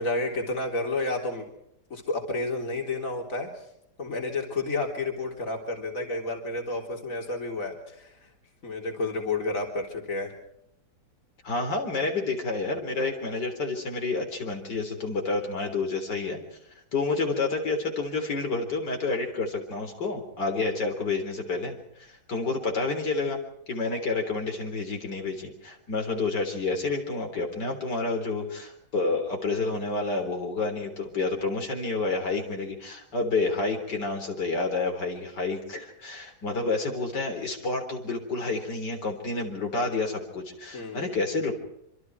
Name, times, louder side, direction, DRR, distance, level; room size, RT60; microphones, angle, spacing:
voice 1, 0.0-1.4 1.9-3.5 4.0-8.1 8.6-10.3 40.7-41.1, left 2 dB, 50° left, 2 dB, 4.1 m, -30 dB
voice 2, 11.4-16.4 16.9-23.4 23.7-41.5, left 3 dB, 75° left, 3 dB, 4.4 m, -29 dB
26.5 x 26.0 x 4.7 m, 0.77 s
omnidirectional pair, 1.8 m